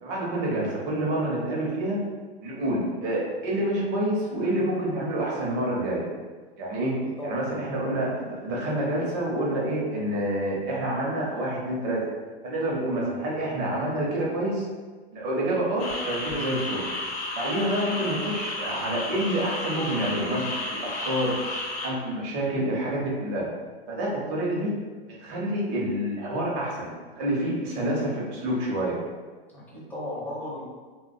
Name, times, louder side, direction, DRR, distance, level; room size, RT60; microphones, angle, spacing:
voice 1, 0.0-2.0 2.4-6.0 6.6-7.0 7.2-12.0 12.4-14.7 15.1-16.8 17.3-21.4 21.8-23.5 23.9-24.7 25.1-29.0, right 1 dB, 45° right, -4 dB, 0.8 m, -28 dB
voice 2, 7.0-7.4 29.5-30.6, left 1 dB, 5° left, -7 dB, 0.6 m, -36 dB
sound 1, 15.8-21.9, left 2 dB, 70° left, 0.7 m, -32 dB
2.3 x 2.2 x 2.5 m, 1.4 s
hypercardioid pair, 105°, 32 cm